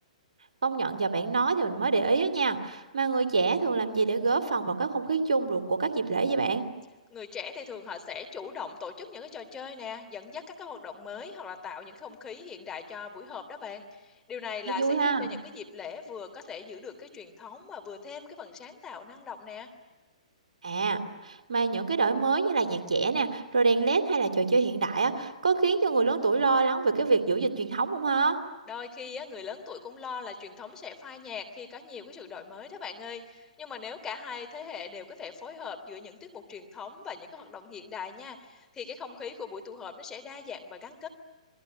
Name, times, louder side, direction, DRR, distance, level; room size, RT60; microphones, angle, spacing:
voice 1, 0.6-6.7 14.7-15.3 20.6-28.4, right 4 dB, 70° right, 7 dB, 2.7 m, -26 dB
voice 2, 7.1-19.7 28.7-41.1, left 6 dB, 15° left, 5 dB, 3.2 m, -40 dB
28.5 x 21.0 x 9.9 m, 1.2 s
figure-of-eight pair, 125°, 4 cm